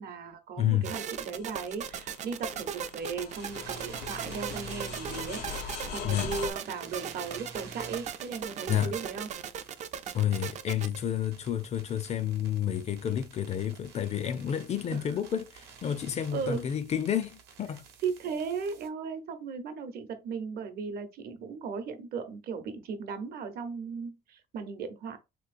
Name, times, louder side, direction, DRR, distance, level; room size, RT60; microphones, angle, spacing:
voice 1, 0.0-5.4 5.9-9.3 16.3-16.6 18.0-25.2, right 5 dB, 65° right, 0.8 m, -36 dB
voice 2, 0.6-0.9 6.0-6.3 8.7-8.9 10.1-17.8, left 10 dB, 40° left, 0.4 m, -30 dB
sound 1, 0.8-6.5, left 6 dB, 75° left, 0.9 m, -42 dB
sound 2, 0.8-11.0, right 8 dB, 45° right, 0.4 m, -37 dB
sound 3, 3.3-18.9, right 5 dB, 90° right, 0.9 m, -50 dB
3.3 x 2.9 x 2.5 m
cardioid pair, 110°, 17 cm